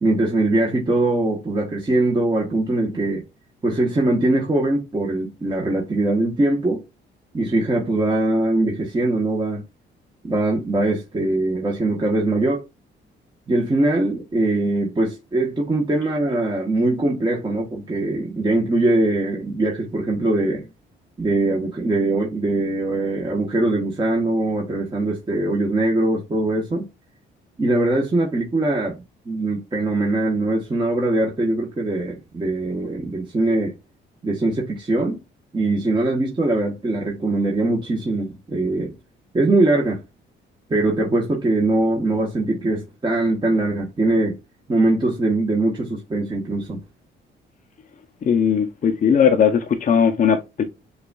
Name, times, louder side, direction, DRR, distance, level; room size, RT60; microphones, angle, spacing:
voice 1, 0.0-3.2 3.6-6.8 7.3-9.6 10.2-12.6 13.5-20.7 21.2-26.8 27.6-33.7 34.2-35.2 35.5-39.0 39.3-40.0 40.7-44.4 44.7-46.8, right 2 dB, 25° right, 1.0 m, -22 dB
voice 2, 48.2-50.6, left 7 dB, 40° left, 0.6 m, -18 dB
6.5 x 2.4 x 2.3 m
cardioid pair, 90°, 20 cm